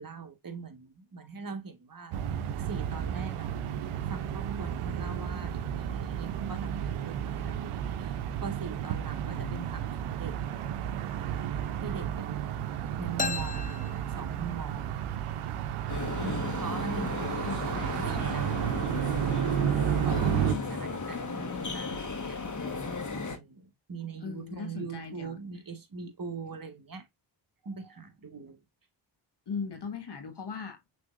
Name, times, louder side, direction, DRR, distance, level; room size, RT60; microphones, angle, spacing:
voice 1, 0.0-2.1 2.6-3.5 3.9-10.4 11.8-12.6 13.0-15.0 16.2-18.7 19.7-22.4 23.3-27.0 27.6-28.6, right 5 dB, 40° right, 1.7 m, -41 dB
sound 1, 2.1-20.5, right 9 dB, 90° right, 0.7 m, -32 dB
voice 2, 9.3-10.0 16.2-16.7 17.4-18.3 24.2-25.4 29.5-31.0, left 5 dB, 55° left, 1.6 m, -39 dB
sound 2, 13.2-14.9, left 5 dB, 20° left, 0.4 m, -36 dB
sound 3, 15.9-23.4, left 3 dB, 35° left, 1.6 m, -35 dB
6.2 x 3.3 x 2.5 m
supercardioid pair, 40°, 49 cm